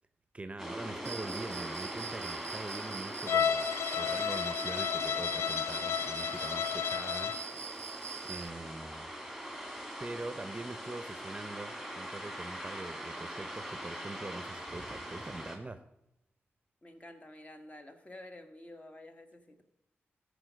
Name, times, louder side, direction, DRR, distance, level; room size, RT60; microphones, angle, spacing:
voice 1, 0.3-7.3 7.9-9.1 10.0-15.8, right 2 dB, 25° right, 11 dB, 0.6 m, -43 dB
sound 1, 0.6-15.6, equal, 5° left, 2.5 m, -42 dB
Cricket, 1.0-8.5, right 7 dB, 70° right, 0.4 m, -44 dB
Bowed string instrument, 3.3-7.5, left 8 dB, 80° left, 0.4 m, -32 dB
voice 2, 16.8-19.6, left 1 dB, 30° left, 7 dB, 1.2 m, -50 dB
14.0 x 5.1 x 5.0 m, 0.87 s
cardioid pair, 60°, 5 cm